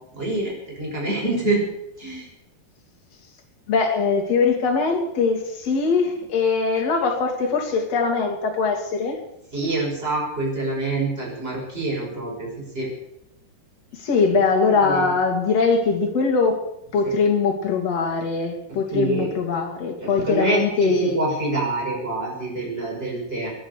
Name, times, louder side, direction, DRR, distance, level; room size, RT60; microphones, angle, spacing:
voice 1, 0.1-0.5 0.8-1.6 2.0-2.3 9.5-12.5 12.7-12.9 14.7-15.1 18.9-19.3 20.0-23.5, right 2 dB, 15° right, -2 dB, 6.0 m, -26 dB
voice 2, 3.7-9.2 14.0-16.6 16.9-21.2, left 4 dB, 40° left, 1 dB, 3.2 m, -21 dB
19.0 x 10.0 x 6.7 m, 0.83 s
omnidirectional pair, 4.8 m